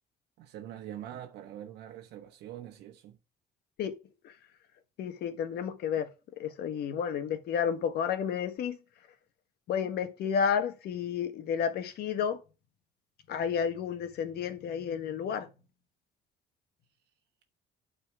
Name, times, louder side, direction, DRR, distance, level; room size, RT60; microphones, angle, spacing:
voice 1, 0.4-3.2, right 11 dB, 80° right, 1.1 m, -44 dB
voice 2, 5.0-6.1 6.4-8.8 9.7-12.4 13.3-15.5, left 7 dB, 70° left, 1.5 m, -31 dB
8.9 x 4.4 x 6.1 m
cardioid pair, 110°, 17 cm